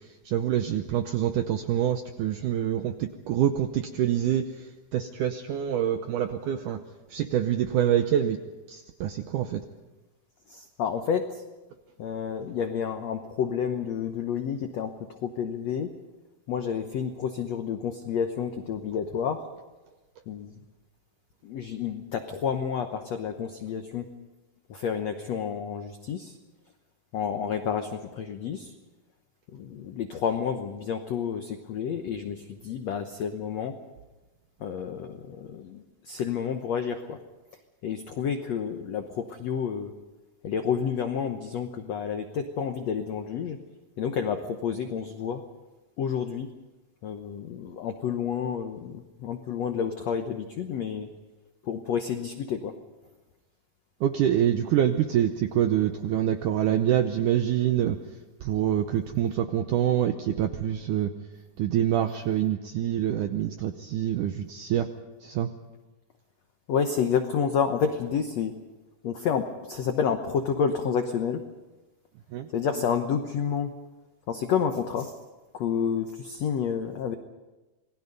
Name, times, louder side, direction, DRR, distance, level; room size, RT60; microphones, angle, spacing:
voice 1, 0.3-4.4 4.9-6.8 7.1-8.4 8.7-9.6 54.0-58.0 58.4-61.1 61.6-64.9 65.2-65.5 72.3-72.5, right 10 dB, 80° right, 8 dB, 1.8 m, -26 dB
voice 2, 10.5-11.4 12.0-14.9 15.2-15.9 16.5-19.5 20.3-20.6 21.4-24.1 24.7-26.4 27.1-28.7 29.5-33.7 34.6-37.2 37.8-39.9 40.4-43.6 44.0-45.4 46.0-46.5 47.0-51.1 51.7-52.7 66.7-68.5 69.0-71.4 72.5-73.7 74.3-75.1 75.5-77.1, left 7 dB, 90° left, 6 dB, 1.4 m, -29 dB
27.5 x 20.0 x 5.4 m, 1.1 s
omnidirectional pair, 4.6 m